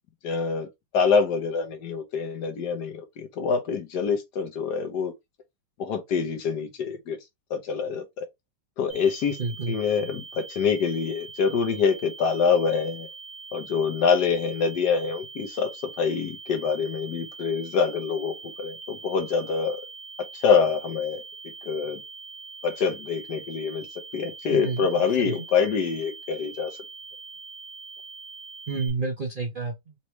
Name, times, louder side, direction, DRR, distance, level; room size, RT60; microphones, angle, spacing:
voice 1, 0.2-0.7 0.9-5.1 5.8-7.2 7.5-8.2 8.8-9.4 9.7-13.1 13.5-19.8 20.3-21.2 21.7-22.0 22.6-23.9 24.1-26.7, left 6 dB, 65° left, 1.5 m, -25 dB
sound 1, 8.9-28.9, right 4 dB, 35° left, 1.5 m, -43 dB
voice 2, 9.4-9.7 24.5-24.9 25.2-25.3 28.7-29.9, right 4 dB, 90° right, 0.4 m, -29 dB
4.1 x 3.0 x 3.2 m
omnidirectional pair, 2.1 m